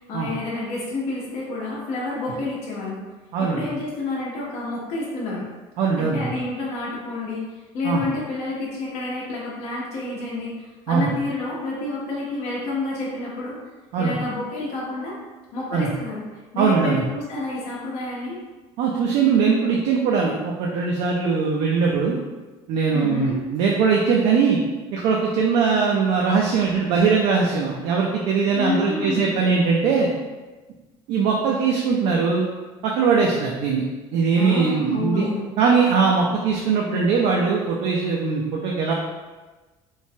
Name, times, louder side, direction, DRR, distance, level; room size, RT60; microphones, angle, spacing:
voice 1, 0.0-3.0 3.4-5.5 6.0-13.6 14.0-15.1 15.5-16.2 16.5-18.4 22.9-23.4 28.5-29.3 34.4-35.5, left 2 dB, 65° left, -5 dB, 0.7 m, -29 dB
voice 2, 5.8-6.2 7.8-8.0 10.9-11.1 13.9-14.2 15.7-15.9 16.6-17.0 18.8-22.2 22.7-24.6 24.9-30.1 31.1-32.5 32.8-33.8 34.1-35.3 35.6-38.9, right 5 dB, 65° right, -1 dB, 0.4 m, -21 dB
3.0 x 2.1 x 2.7 m, 1.2 s
cardioid pair, 125°, 12 cm